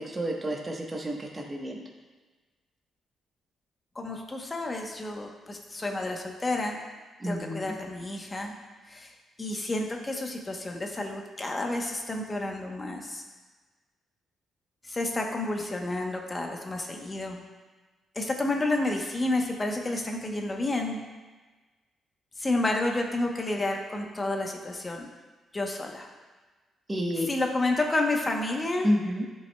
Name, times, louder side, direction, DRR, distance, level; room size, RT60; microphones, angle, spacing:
voice 1, 0.0-1.8 7.2-7.7 26.9-27.3 28.8-29.3, equal, 20° right, 0 dB, 1.2 m, -30 dB
voice 2, 3.9-6.8 7.2-8.5 8.9-9.1 9.4-13.2 14.8-17.4 18.1-21.0 22.4-25.1 25.5-26.1 27.3-28.9, left 2 dB, 25° left, 2 dB, 1.0 m, -30 dB
11.5 x 5.5 x 2.3 m, 1.3 s
cardioid pair, 100°, 0 cm